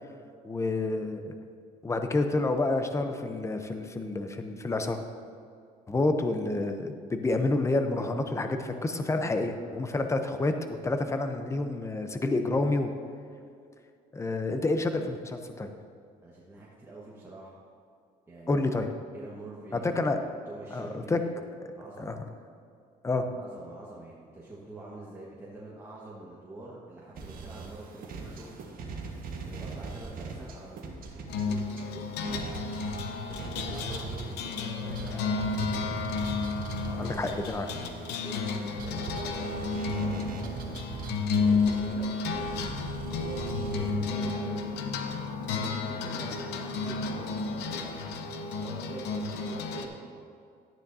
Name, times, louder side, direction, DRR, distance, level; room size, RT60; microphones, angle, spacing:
voice 1, 0.4-1.3 1.8-5.0 5.9-10.5 10.8-12.9 14.1-15.7 18.5-18.9 19.7-20.2 20.7-21.2 22.0-22.2 23.0-23.3 37.0-37.7, left 2 dB, 15° left, 7 dB, 0.7 m, -29 dB
voice 2, 9.5-10.2 16.2-17.5 18.3-21.4 21.7-22.2 23.3-28.7 29.4-32.4 33.3-36.0 36.8-39.6 39.9-40.8 41.3-42.8 43.1-44.8 45.5-50.3, right 2 dB, 15° right, -6 dB, 1.5 m, -46 dB
sound 1, 27.1-31.8 32.2-44.0, right 4 dB, 60° right, 1.5 m, -41 dB
sound 2, 31.3-49.9, left 4 dB, 85° left, 0.8 m, -32 dB
12.0 x 9.9 x 2.8 m, 2.4 s
cardioid pair, 110°, 17 cm